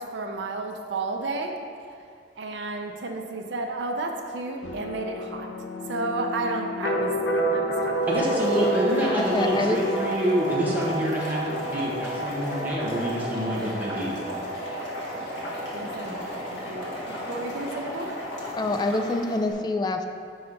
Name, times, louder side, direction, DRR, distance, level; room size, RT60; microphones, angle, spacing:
voice 1, 0.0-1.5 2.4-5.5 5.9-7.1 7.5-8.0 12.5-12.6 15.7-18.1, right 3 dB, 75° right, 3 dB, 0.5 m, -32 dB
sound 1, 4.6-18.2, right 1 dB, 65° left, 0.6 m, -31 dB
Boiling, 7.9-19.5, left 1 dB, 85° left, 1.6 m, -36 dB
voice 2, 8.1-14.1, equal, 10° right, -7 dB, 1.2 m, -27 dB
voice 3, 9.0-9.8 18.6-20.0, left 2 dB, 25° left, 6 dB, 0.3 m, -26 dB
5.6 x 4.2 x 5.0 m, 2.3 s
head